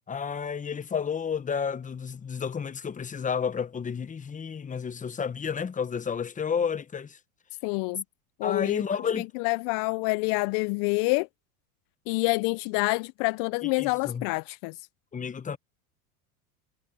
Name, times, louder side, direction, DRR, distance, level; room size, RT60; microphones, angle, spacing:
voice 1, 0.1-7.2 8.4-9.3 13.6-14.2 15.1-15.6, left 6 dB, 15° left, 1.2 m, -31 dB
voice 2, 7.6-8.0 8.4-8.8 9.2-11.3 12.1-14.9, left 29 dB, 50° left, 0.5 m, -27 dB
hypercardioid pair, 100°, 44 cm